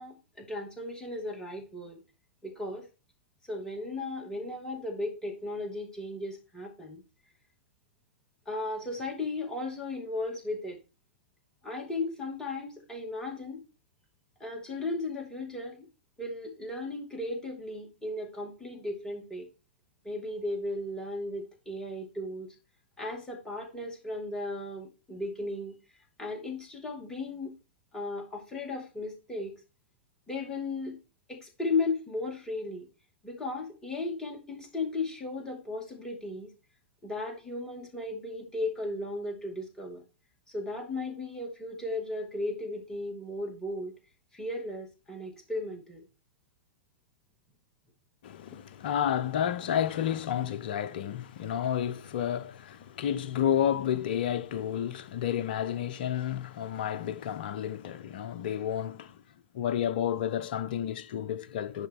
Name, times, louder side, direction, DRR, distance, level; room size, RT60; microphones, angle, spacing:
voice 1, 0.0-2.0 2.4-2.9 3.5-7.0 8.5-10.8 11.6-13.6 14.4-15.9 16.2-19.5 20.0-22.5 23.0-25.8 26.2-27.5 27.9-29.5 30.3-31.0 31.3-32.9 33.2-36.5 37.0-40.0 40.5-43.9 44.3-46.0, left 2 dB, 10° left, 2.3 m, -35 dB
voice 2, 48.2-59.2 59.5-61.9, left 10 dB, 50° left, 0.6 m, -31 dB
10.0 x 3.8 x 3.7 m
figure-of-eight pair, 100°, 6 cm